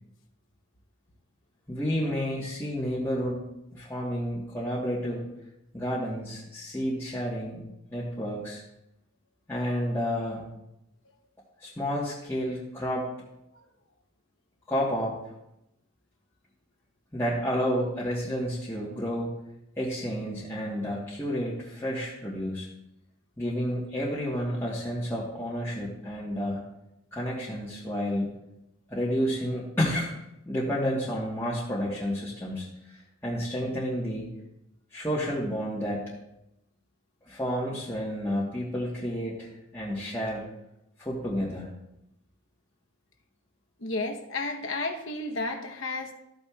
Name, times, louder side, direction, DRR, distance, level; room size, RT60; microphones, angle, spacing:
voice 1, 1.7-3.4 3.7-5.3 5.7-7.6 7.9-8.6 9.5-10.4 11.6-13.1 14.7-15.2 17.1-19.3 19.8-22.7 23.4-26.6 27.1-28.3 28.9-30.1 30.4-34.3 34.9-36.0 37.3-39.5 39.7-40.4 41.0-41.7, equal, 10° left, -8 dB, 1.3 m, -30 dB
voice 2, 43.8-46.1, left 2 dB, 60° left, 3 dB, 1.0 m, -32 dB
13.0 x 8.7 x 2.4 m, 0.87 s
head